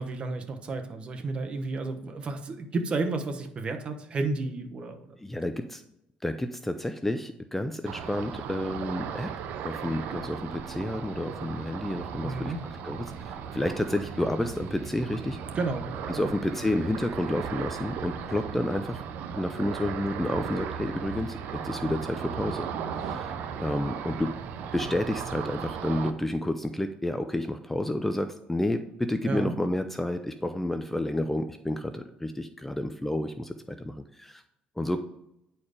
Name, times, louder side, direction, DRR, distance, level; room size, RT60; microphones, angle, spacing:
voice 1, 0.0-5.2 12.2-12.6 15.5-16.3 29.2-29.5, right 3 dB, 35° right, 6 dB, 1.0 m, -32 dB
voice 2, 5.2-5.8 6.2-9.3 9.6-15.4 16.1-19.0 19.3-22.7 23.0-23.3 23.6-24.3 24.7-34.4 34.8-35.0, left 1 dB, 10° left, 9 dB, 0.4 m, -30 dB
Ocean, 7.9-26.1, right 7 dB, 75° right, 0.7 m, -36 dB
9.9 x 4.5 x 4.9 m, 0.82 s
cardioid pair, 115°, 3 cm